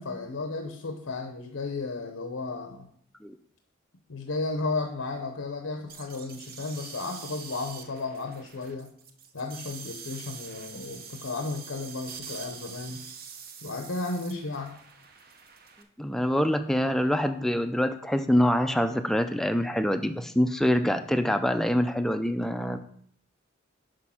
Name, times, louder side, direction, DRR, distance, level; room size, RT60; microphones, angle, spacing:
voice 1, 0.0-2.9 4.1-8.9 9.3-13.0 13.6-14.7, left 3 dB, 85° left, 4 dB, 0.8 m, -34 dB
sound 1, 5.9-15.8, right 6 dB, 45° right, 0.7 m, -45 dB
voice 2, 16.0-22.8, equal, ahead, 8 dB, 0.4 m, -25 dB
6.3 x 5.2 x 5.7 m, 0.63 s
head